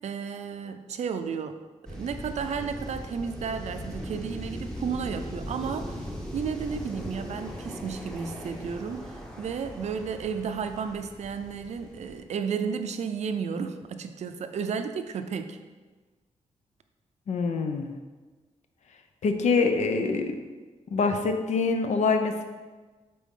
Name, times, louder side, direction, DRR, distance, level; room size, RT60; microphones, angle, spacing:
voice 1, 0.0-1.6 1.9-6.1 6.3-15.6, right 6 dB, 65° right, 8 dB, 0.5 m, -33 dB
sound 1, 1.9-12.2, equal, 5° left, 0.9 m, -39 dB
voice 2, 17.3-17.9 19.2-20.4 20.9-22.4, left 4 dB, 70° left, 6 dB, 0.6 m, -25 dB
8.5 x 4.2 x 3.7 m, 1.3 s
wide cardioid pair, 170°, 13 cm